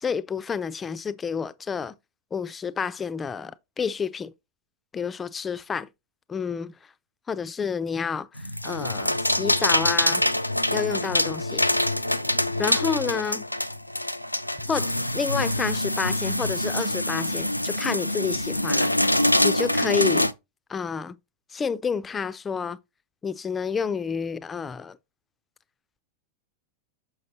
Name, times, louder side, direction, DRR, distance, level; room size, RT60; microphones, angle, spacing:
voice 1, 0.0-1.9 2.3-4.3 4.9-5.9 6.3-6.7 7.3-10.2 10.7-11.7 12.6-13.5 14.7-18.9 19.4-20.3 20.7-21.2 21.5-22.8 23.2-25.0, left 6 dB, 20° left, 0.4 m, -29 dB
sound 1, 8.4-20.3, left 1 dB, 85° left, 0.3 m, -25 dB
6.3 x 6.2 x 2.8 m
figure-of-eight pair, 90°, 0 cm